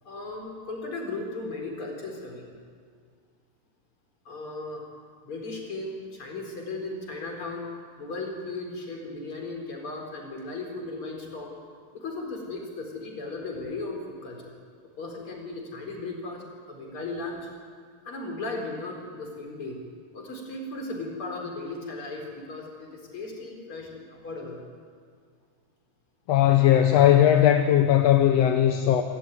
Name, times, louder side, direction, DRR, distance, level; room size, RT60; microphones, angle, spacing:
voice 1, 0.0-2.5 4.2-4.8 5.2-7.7 8.0-11.6 11.9-14.5 15.0-17.5 18.0-19.8 20.1-24.6, left 2 dB, 45° left, 1 dB, 4.9 m, -36 dB
voice 2, 26.3-29.0, left 11 dB, 65° left, 6 dB, 1.9 m, -18 dB
26.0 x 13.0 x 9.5 m, 2.1 s
omnidirectional pair, 3.4 m